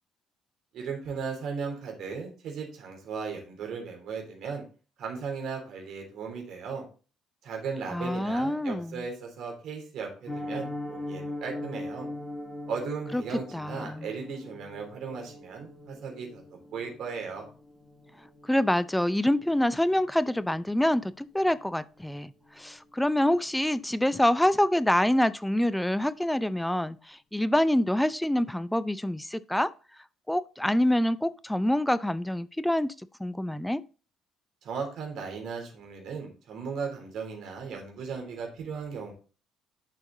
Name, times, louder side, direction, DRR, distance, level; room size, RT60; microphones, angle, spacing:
voice 1, 0.7-4.6 5.0-6.8 7.4-12.1 12.7-17.5 34.6-39.1, right 5 dB, 55° right, 3.3 m, -36 dB
voice 2, 7.9-9.0 13.1-13.2 13.5-14.1 18.5-22.3 22.6-29.7 30.3-32.9 33.2-33.8, left 1 dB, 5° left, 0.6 m, -26 dB
Piano, 10.3-21.2 21.4-21.6 22.0-22.1 22.5-22.7 23.0-23.1, left 1 dB, 20° left, 3.9 m, -41 dB
11.0 x 5.9 x 3.9 m
figure-of-eight pair, 50°, 0 cm